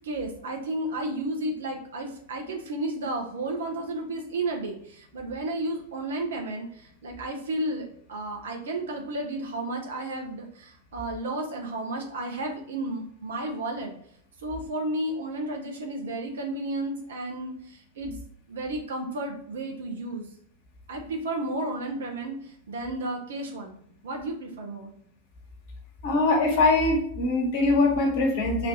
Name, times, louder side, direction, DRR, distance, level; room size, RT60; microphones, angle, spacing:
voice 1, 0.0-14.0 14.4-18.2 18.5-20.3 20.9-23.8 24.0-24.9, right 1 dB, 65° right, 2 dB, 0.9 m, -32 dB
voice 2, 26.0-28.7, left 2 dB, 55° left, 1 dB, 1.3 m, -22 dB
4.2 x 2.7 x 3.9 m, 0.67 s
figure-of-eight pair, 90°, 0 cm